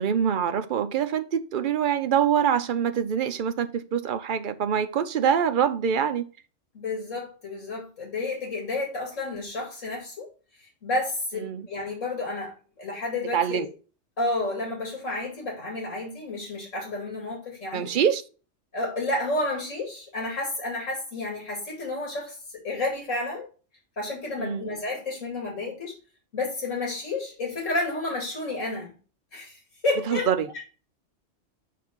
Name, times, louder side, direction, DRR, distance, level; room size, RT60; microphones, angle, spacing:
voice 1, 0.0-6.2 11.4-11.7 13.3-13.7 17.7-18.2 24.4-24.7 30.1-30.5, right 8 dB, 50° right, 0.7 m, -25 dB
voice 2, 6.7-10.3 10.6-13.7 14.2-17.9 18.7-22.4 22.6-23.5 24.0-25.9 26.3-28.9 29.3-29.6 29.8-30.3 30.5-30.7, left 2 dB, 85° left, 2.7 m, -31 dB
5.9 x 5.0 x 4.5 m
omnidirectional pair, 1.3 m